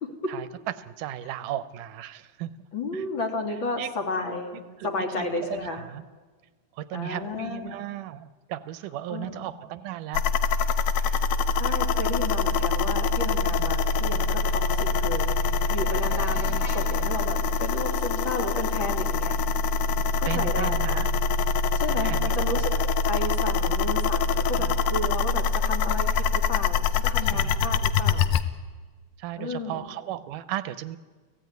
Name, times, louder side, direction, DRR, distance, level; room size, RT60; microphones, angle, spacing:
voice 1, 0.0-0.3 2.7-5.9 6.9-7.8 9.1-9.5 11.6-19.4 20.2-21.1 21.7-22.7 23.0-28.3 29.4-29.9, left 2 dB, 40° left, 3 dB, 2.9 m, -33 dB
voice 2, 0.8-2.7 2.9-3.0 3.8-3.9 4.8-6.0 6.7-10.3 11.0-11.3 11.6-11.7 20.3-21.1 21.9-22.9 24.5-24.8 27.3-27.7 29.2-31.0, right 13 dB, 85° right, 14 dB, 2.5 m, -36 dB
sound 1, 10.1-28.4, left 4 dB, 80° left, 2.4 m, -24 dB
sound 2, 14.5-19.4, left 2 dB, 25° left, 3.7 m, -50 dB
29.5 x 17.0 x 9.4 m, 1.4 s
omnidirectional pair, 3.6 m